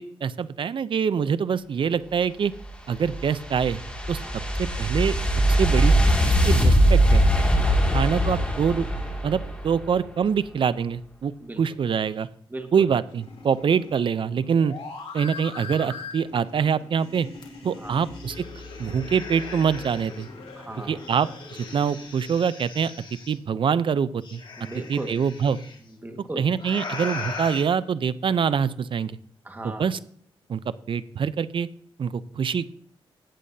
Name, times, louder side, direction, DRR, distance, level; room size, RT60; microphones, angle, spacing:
voice 1, 0.0-2.5 2.9-3.8 4.1-4.2 4.6-5.1 5.6-5.9 6.3-7.2 7.9-8.9 9.2-11.3 11.6-12.3 12.7-14.7 15.1-17.3 17.6-18.4 18.8-20.3 20.9-21.3 21.7-22.9 23.3-24.4 24.9-25.6 26.4-29.1 29.8-30.0 30.5-30.6 30.9-31.7 32.0-32.8, right 7 dB, 60° right, 16 dB, 0.5 m, -24 dB
sound 1, 2.6-9.8, equal, 10° left, 2.3 m, -21 dB
voice 2, 7.5-7.9 11.4-11.6 12.5-12.9 17.7-18.1 20.5-21.0 24.6-25.2 25.9-26.4 29.4-29.9, right 1 dB, 20° right, 4 dB, 1.6 m, -37 dB
sound 2, 13.1-22.3, left 4 dB, 75° left, 3.1 m, -42 dB
sound 3, 17.4-17.5 17.9-20.2 21.0-23.4 24.2-25.8 26.6-27.6, left 4 dB, 55° left, 1.9 m, -39 dB
15.0 x 8.4 x 2.7 m, 0.62 s
cardioid pair, 85°, 10 cm